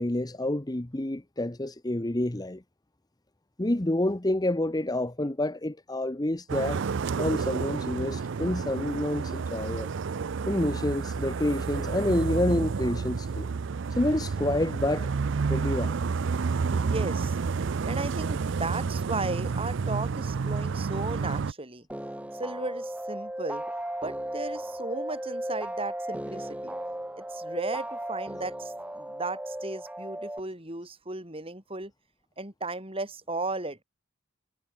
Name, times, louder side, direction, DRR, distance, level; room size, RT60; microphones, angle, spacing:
voice 1, 0.0-2.6 3.6-6.8 7.2-9.9 10.5-13.5 13.9-15.1 15.5-15.9, left 1 dB, 20° left, 0.9 m, -28 dB
sound 1, 6.5-21.5, right 5 dB, 60° right, 0.5 m, -30 dB
voice 2, 16.7-17.4 17.9-21.9 22.3-23.7 24.0-26.7 27.2-31.9 32.4-33.8, right 2 dB, 25° right, 7.6 m, -35 dB
sound 2, 21.9-30.4, right 1 dB, 5° right, 1.6 m, -36 dB
head